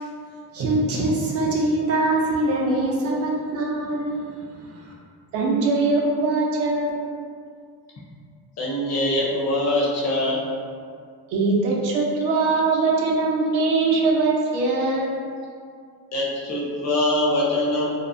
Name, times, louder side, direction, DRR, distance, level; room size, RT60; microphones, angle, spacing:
voice 1, 0.5-4.9, right 2 dB, 40° right, -3 dB, 0.4 m, -24 dB
voice 2, 5.3-7.1 11.3-15.1, right 3 dB, 80° right, -2 dB, 0.6 m, -21 dB
voice 3, 8.6-10.4 16.1-17.9, left 1 dB, 40° left, -4 dB, 0.6 m, -23 dB
2.7 x 2.0 x 2.5 m, 2.2 s
cardioid pair, 125°, 40 cm